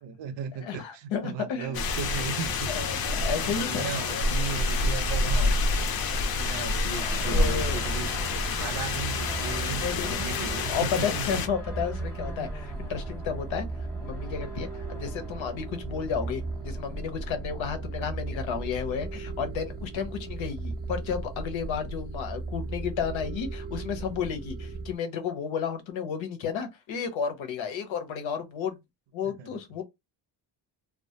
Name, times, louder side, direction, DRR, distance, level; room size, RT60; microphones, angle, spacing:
voice 1, 0.0-2.9 3.4-5.8 6.2-11.4 29.2-29.6, right 6 dB, 70° right, 0.6 m, -37 dB
voice 2, 0.6-1.8 2.7-4.4 6.0-6.5 7.2-7.9 9.7-10.4 10.7-13.7 14.0-28.8 29.1-29.8, left 7 dB, 80° left, 0.8 m, -32 dB
sound 1, 1.7-11.5, left 3 dB, 55° left, 0.5 m, -28 dB
sound 2, 6.9-20.9, left 1 dB, 5° left, 0.8 m, -45 dB
sound 3, 7.2-25.0, right 3 dB, 20° right, 0.4 m, -36 dB
2.2 x 2.1 x 2.7 m
cardioid pair, 80°, 45 cm